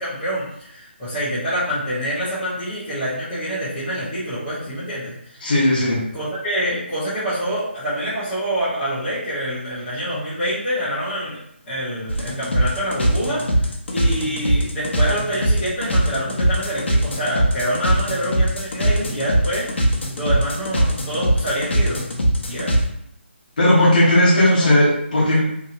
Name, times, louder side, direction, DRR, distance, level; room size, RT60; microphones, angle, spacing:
voice 1, 0.0-5.4 6.1-11.4 11.6-22.0 22.5-22.7 24.5-24.7, equal, 10° left, -13 dB, 0.7 m, -26 dB
voice 2, 5.4-6.0 23.6-25.4, left 1 dB, 45° left, -5 dB, 1.0 m, -16 dB
sound 1, 12.1-22.8, right 1 dB, 65° left, 0.7 m, -20 dB
2.8 x 2.8 x 2.4 m, 0.72 s
hypercardioid pair, 170°, 7 cm